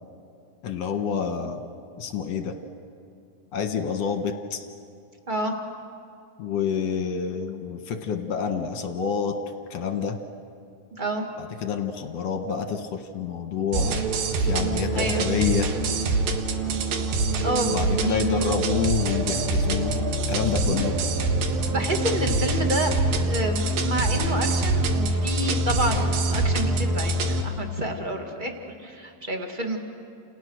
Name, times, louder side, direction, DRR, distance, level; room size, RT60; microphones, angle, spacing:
voice 1, 0.6-1.6 2.0-2.5 3.5-4.7 6.4-9.4 9.7-10.2 11.4-14.0 14.4-15.7 17.6-20.0 20.3-20.9, left 6 dB, 55° left, 6 dB, 2.1 m, -28 dB
voice 2, 11.0-11.3 14.9-15.2 17.4-18.6 21.7-22.9 23.3-28.5 28.8-29.8, right 1 dB, 20° right, 3 dB, 1.6 m, -29 dB
sound 1, 13.7-27.4, right 2 dB, 80° right, 3.4 m, -24 dB
30.0 x 29.0 x 6.5 m, 2.5 s
omnidirectional pair, 4.1 m